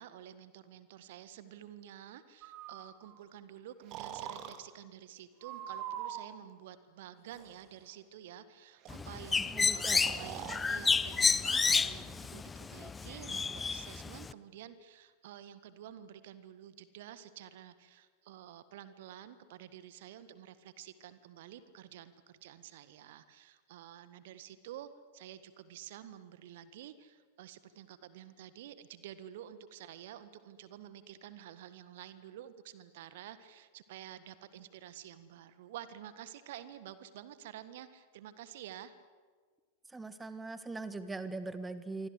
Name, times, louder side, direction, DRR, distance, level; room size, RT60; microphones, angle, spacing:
voice 1, 0.0-38.9, right 11 dB, 55° right, 13 dB, 1.6 m, -50 dB
Breathing, 2.4-3.2 3.9-4.6 5.4-6.4 7.3-7.7 8.9-9.0 9.2-9.3 10.0-10.6, right 10 dB, 40° right, 2.3 m, -43 dB
Bird, 8.9-14.3, left 5 dB, 15° left, 0.7 m, -31 dB
voice 2, 9.5-10.0 39.9-42.1, right 3 dB, 10° right, 13 dB, 1.4 m, -41 dB
27.5 x 24.5 x 8.0 m, 1.5 s
figure-of-eight pair, 90°, 0 cm